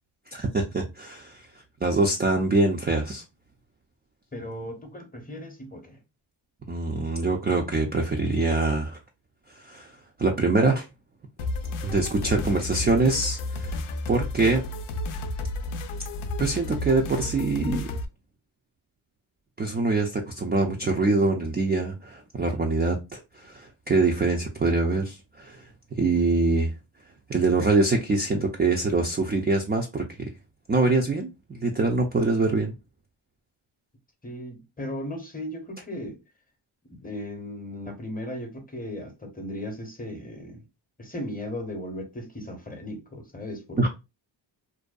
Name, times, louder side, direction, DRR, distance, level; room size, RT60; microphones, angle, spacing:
voice 1, 0.3-1.4 1.8-3.2 6.7-9.0 9.6-9.9 10.2-10.9 11.8-13.8 14.1-14.7 16.4-17.9 19.6-25.7 26.0-26.7 27.3-30.3 30.7-32.7 43.8-43.9, right 3 dB, 20° right, 0.4 m, -24 dB
voice 2, 4.3-6.0 34.2-36.2 36.9-40.6 41.0-43.9, left 1 dB, 20° left, 0.7 m, -37 dB
sound 1, 11.4-18.0, left 2 dB, 75° left, 0.6 m, -32 dB
2.6 x 2.2 x 2.3 m
cardioid pair, 65°, 49 cm